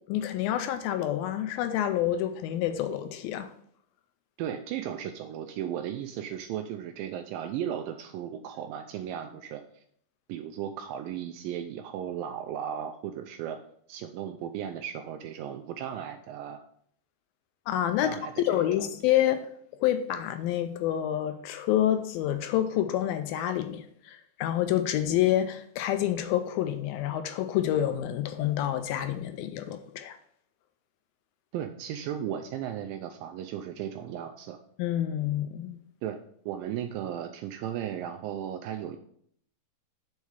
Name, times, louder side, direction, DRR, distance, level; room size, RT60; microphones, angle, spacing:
voice 1, 0.1-3.5 17.7-19.4 19.8-30.2 34.8-35.8, left 11 dB, 80° left, 2.1 m, -28 dB
voice 2, 4.4-9.8 10.3-13.6 13.9-16.6 18.0-18.9 31.5-34.6 36.0-36.2 36.5-39.0, right 9 dB, 90° right, 2.0 m, -36 dB
6.5 x 4.7 x 5.5 m
omnidirectional pair, 4.5 m